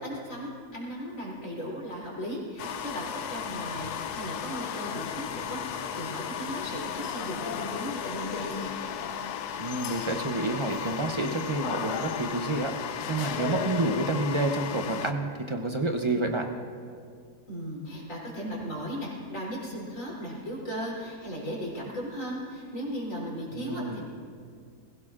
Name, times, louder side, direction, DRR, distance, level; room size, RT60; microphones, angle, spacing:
voice 1, 0.0-8.7 17.5-24.1, equal, 55° left, -5 dB, 3.8 m, -36 dB
sound 1, 2.6-15.1, left 8 dB, 80° left, 1.1 m, -35 dB
voice 2, 9.6-12.7 13.1-16.5 23.5-24.0, right 2 dB, 45° right, 3 dB, 0.4 m, -29 dB
20.5 x 16.5 x 2.5 m, 2.2 s
omnidirectional pair, 1.7 m